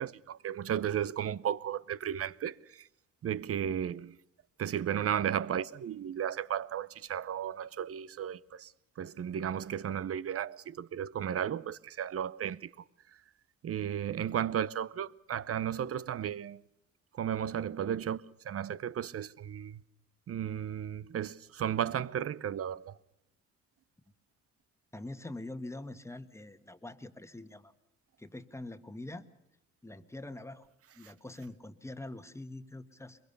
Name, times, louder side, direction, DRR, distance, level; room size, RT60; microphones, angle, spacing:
voice 1, 0.0-2.9 3.2-4.2 4.6-12.7 13.1-13.2 13.6-16.6 17.1-19.8 20.3-23.0 31.0-31.1, right 9 dB, 50° right, 0.8 m, -34 dB
voice 2, 24.9-27.7 28.2-29.3 29.8-30.7 30.9-33.2, left 2 dB, 10° left, 1.5 m, -44 dB
23.5 x 22.5 x 6.8 m
cardioid pair, 90°, 30 cm